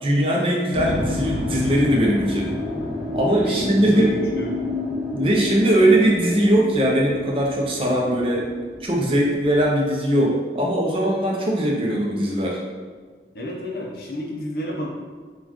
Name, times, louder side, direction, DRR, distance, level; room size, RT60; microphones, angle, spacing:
voice 1, 0.0-2.5 3.1-4.1 5.1-8.5 8.8-12.6, right 1 dB, 30° right, -2 dB, 0.5 m, -20 dB
sound 1, 0.7-9.6, left 1 dB, 10° right, 0.9 m, -30 dB
voice 2, 3.4-4.6 13.3-14.9, left 1 dB, 55° left, -2 dB, 0.6 m, -30 dB
4.2 x 2.3 x 2.9 m, 1.5 s
head